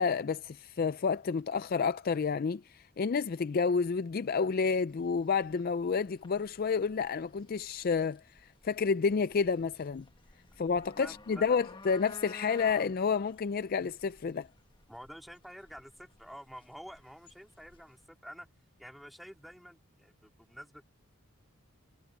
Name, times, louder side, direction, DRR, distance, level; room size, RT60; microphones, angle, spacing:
voice 1, 0.0-8.2 8.6-10.0 10.6-14.5, left 5 dB, 40° left, 0.4 m, -30 dB
sound 1, 4.9-18.0, left 3 dB, 20° left, 1.4 m, -54 dB
voice 2, 10.8-11.4 14.9-18.5 18.8-20.8, equal, ahead, 3.2 m, -49 dB
head